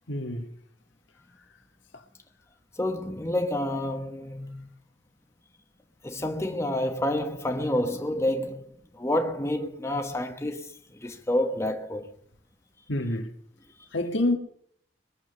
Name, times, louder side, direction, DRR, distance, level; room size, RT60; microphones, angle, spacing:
voice 1, 0.1-0.5 1.9-2.0 12.9-13.3 13.9-14.4, left 1 dB, 70° left, 1.8 m, -27 dB
voice 2, 2.8-4.7 6.0-8.6 8.9-12.1, left 1 dB, 15° left, 1.1 m, -29 dB
22.0 x 7.4 x 6.9 m
head